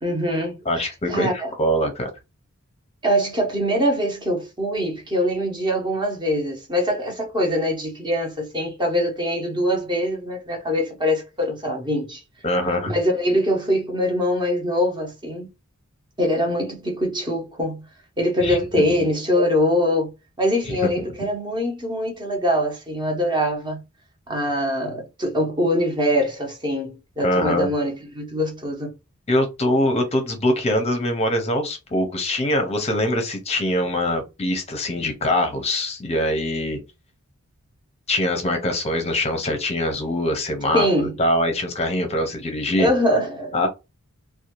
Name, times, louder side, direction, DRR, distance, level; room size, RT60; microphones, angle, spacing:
voice 1, 0.0-1.5 3.0-12.2 12.9-15.5 16.2-17.8 18.2-20.1 20.4-23.8 24.3-28.9 40.7-41.1 42.8-43.7, equal, 20° right, 0.8 m, -23 dB
voice 2, 0.7-2.1 12.4-12.9 18.4-18.9 21.0-21.1 27.2-27.7 29.3-36.8 38.1-42.9 43.5-43.7, left 1 dB, 30° left, 0.6 m, -23 dB
2.7 x 2.2 x 2.9 m
head